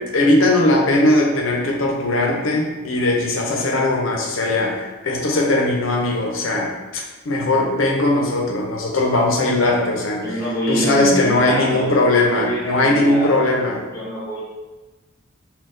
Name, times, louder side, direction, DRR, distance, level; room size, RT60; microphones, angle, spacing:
voice 1, 0.0-10.4 10.7-13.8, left 2 dB, 70° left, 0 dB, 0.6 m, -19 dB
voice 2, 10.2-13.5 13.9-14.5, equal, 15° left, -8 dB, 1.0 m, -26 dB
4.0 x 2.2 x 2.5 m, 1.2 s
head